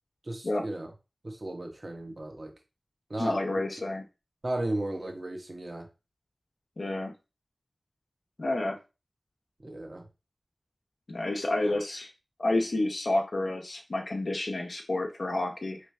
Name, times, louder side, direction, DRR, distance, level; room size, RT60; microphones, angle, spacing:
voice 1, 0.3-0.9 1.2-2.5 3.1-3.4 4.4-5.9 9.6-10.0, right 1 dB, 45° right, 3 dB, 1.1 m, -35 dB
voice 2, 3.2-4.0 6.8-7.1 8.4-8.8 11.1-12.1 12.4-15.8, left 2 dB, 65° left, 2 dB, 0.8 m, -29 dB
4.6 x 3.2 x 3.2 m, 0.28 s
wide cardioid pair, 75°, 0 cm